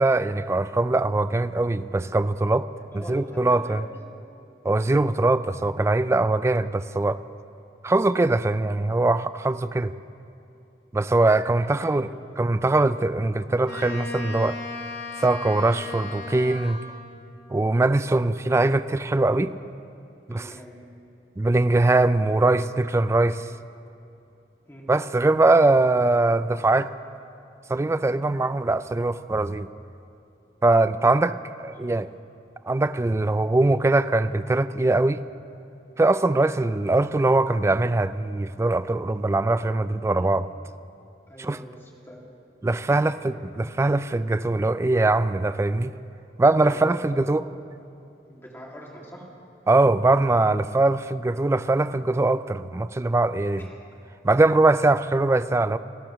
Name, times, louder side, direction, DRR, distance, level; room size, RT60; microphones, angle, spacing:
voice 1, 0.0-2.7 2.9-3.8 4.6-7.2 7.8-9.9 10.9-12.1 12.4-14.6 15.2-16.8 17.5-19.5 20.3-20.5 21.4-23.5 24.9-26.9 27.7-29.7 30.6-32.1 32.7-35.2 36.0-40.5 41.4-41.6 42.6-45.9 46.4-47.4 49.7-53.7 54.2-55.8, right 2 dB, 15° right, 14 dB, 0.3 m, -22 dB
voice 2, 2.9-3.8 11.6-12.4 20.3-20.8 24.7-24.9 40.1-40.3 41.3-42.2 42.9-43.2 46.7-47.0 47.4-47.7 48.3-49.3 53.6-53.8, equal, 15° left, -3 dB, 2.3 m, -44 dB
Wind instrument woodwind instrument, 13.6-17.2, left 3 dB, 65° left, 2.1 m, -36 dB
28.5 x 13.5 x 3.1 m, 2.7 s
head